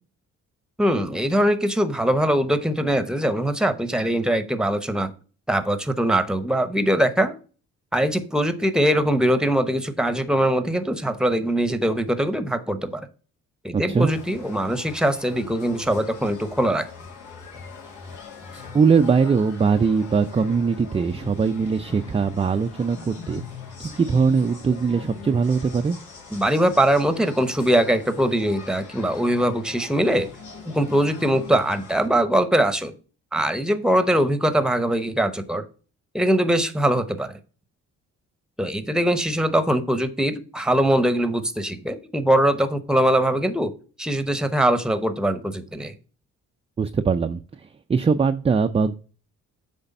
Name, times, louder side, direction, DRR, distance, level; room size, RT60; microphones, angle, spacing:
voice 1, 0.8-5.1 5.5-7.4 7.9-13.1 13.6-16.9 26.3-30.3 30.7-32.9 33.3-35.6 36.1-37.3 38.6-43.7 44.0-45.9, right 1 dB, ahead, 12 dB, 0.9 m, -22 dB
voice 2, 13.7-14.1 18.5-23.4 23.8-26.0 46.8-47.6 47.9-49.0, right 5 dB, 20° right, 7 dB, 0.4 m, -21 dB
sound 1, 14.0-32.1, left 5 dB, 80° left, 2.3 m, -41 dB
8.1 x 3.4 x 5.4 m, 0.38 s
cardioid pair, 90°, 30 cm